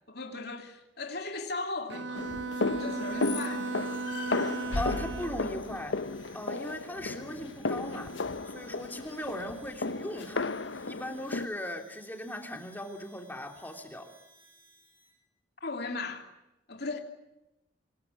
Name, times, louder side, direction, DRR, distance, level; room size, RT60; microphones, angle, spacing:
voice 1, 0.1-2.3 2.8-3.7 15.6-16.3 16.7-17.0, left 3 dB, 60° left, 3.1 m, -37 dB
Bowed string instrument, 1.9-5.5, right 3 dB, 70° right, 1.1 m, -36 dB
sound 1, 2.1-11.5, left 3 dB, 75° left, 0.9 m, -34 dB
Harmonica, 2.8-15.2, right 3 dB, 10° right, 6.6 m, -60 dB
voice 2, 4.7-6.0 6.3-8.1 8.4-10.5 10.9-14.1, left 1 dB, 10° left, 3.0 m, -38 dB
26.5 x 21.5 x 9.6 m
head